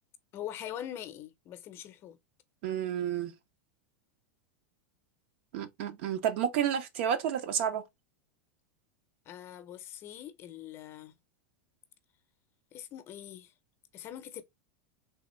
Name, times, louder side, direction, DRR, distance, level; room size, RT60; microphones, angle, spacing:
voice 1, 0.3-2.2 9.3-11.1 12.7-13.5 13.9-14.4, left 11 dB, 40° left, 0.6 m, -43 dB
voice 2, 2.6-3.3 5.5-7.8, right 9 dB, 65° right, 0.7 m, -30 dB
3.4 x 2.4 x 3.1 m
hypercardioid pair, 120°, 7 cm